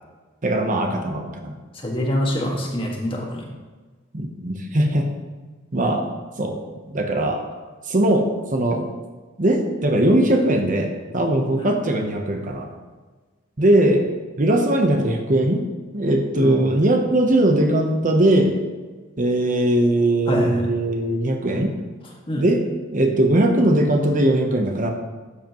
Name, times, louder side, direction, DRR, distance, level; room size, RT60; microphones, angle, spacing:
voice 1, 0.4-1.5 4.1-5.0 5.7-6.0 6.4-6.6 6.9-7.4 7.9-8.9 9.4-12.7 13.6-14.1 14.4-15.6 15.9-18.6 19.2-21.7 22.4-22.6 22.9-24.9, right 1 dB, 40° right, 3 dB, 0.9 m, -20 dB
voice 2, 1.7-3.5 11.5-11.8 16.4-16.6 20.3-20.6 22.3-22.4, left 1 dB, 25° left, -1 dB, 1.7 m, -25 dB
12.5 x 7.7 x 3.0 m, 1.3 s
head